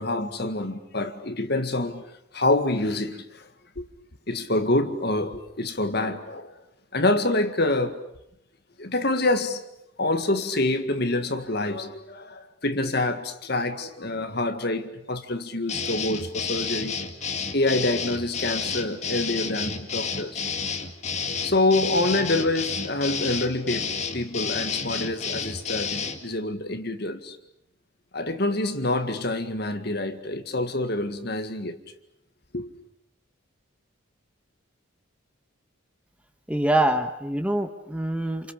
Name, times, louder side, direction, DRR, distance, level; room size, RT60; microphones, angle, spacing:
voice 1, 0.0-2.0 2.3-3.5 3.8-3.9 4.3-6.5 6.9-8.0 8.8-9.6 10.0-17.0 17.5-20.4 21.4-27.4 28.1-31.8 32.5-32.7, left 2 dB, 50° left, 2.0 m, -26 dB
sound 1, 15.7-26.2, left 5 dB, 35° left, 2.2 m, -30 dB
voice 2, 36.5-38.5, right 1 dB, 5° right, 1.6 m, -25 dB
29.0 x 28.5 x 6.8 m
head